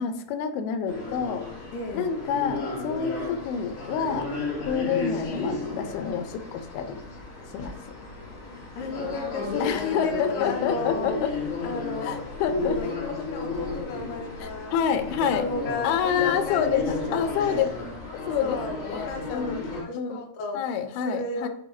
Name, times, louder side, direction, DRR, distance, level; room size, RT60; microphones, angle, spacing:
voice 1, 0.0-1.4 1.9-4.3 4.7-7.0 7.5-7.8 9.6-11.3 12.0-12.8 14.4-15.5 15.8-17.6 18.3-19.7 19.9-20.2 20.5-21.5, left 7 dB, 85° left, 8 dB, 2.6 m, -28 dB
sound 1, 0.9-19.8, left 3 dB, 45° left, 2.9 m, -33 dB
voice 2, 1.7-2.1 8.5-11.2 11.6-12.3 12.6-14.7 15.2-17.7 18.4-20.7 21.0-21.5, left 3 dB, 70° left, 2 dB, 2.3 m, -33 dB
8.6 x 4.7 x 2.6 m, 0.79 s
omnidirectional pair, 4.4 m